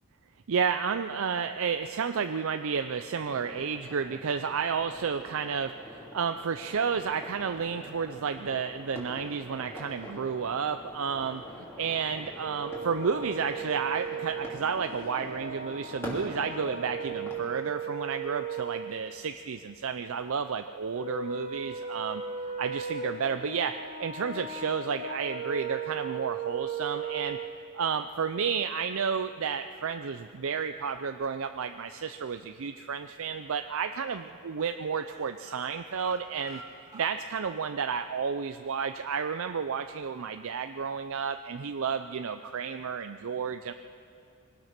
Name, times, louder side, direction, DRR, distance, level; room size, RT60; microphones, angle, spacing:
voice 1, 0.5-22.2 22.6-27.4 27.7-36.6 36.9-43.7, right 6 dB, 65° right, 8 dB, 0.5 m, -31 dB
sound 1, 3.2-17.5, equal, 10° left, 3.5 m, -45 dB
Brass instrument, 12.4-18.9 21.0-27.5, right 5 dB, 70° left, 1.6 m, -37 dB
sound 2, 32.7-33.3 33.6-33.8 34.1-34.3 34.6-37.6 37.9-38.0 38.4-38.5, right 3 dB, 20° right, 2.3 m, -51 dB
23.0 x 18.5 x 6.0 m, 2.6 s
head